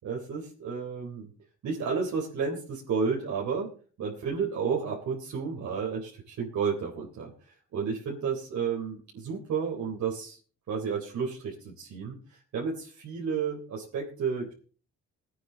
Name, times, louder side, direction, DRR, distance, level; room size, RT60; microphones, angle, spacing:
voice 1, 0.0-1.3 1.6-3.7 4.0-7.3 7.7-10.4 10.7-14.5, right 5 dB, 70° right, -2 dB, 3.8 m, -32 dB
19.5 x 9.5 x 3.9 m, 0.39 s
cardioid pair, 90°, 30 cm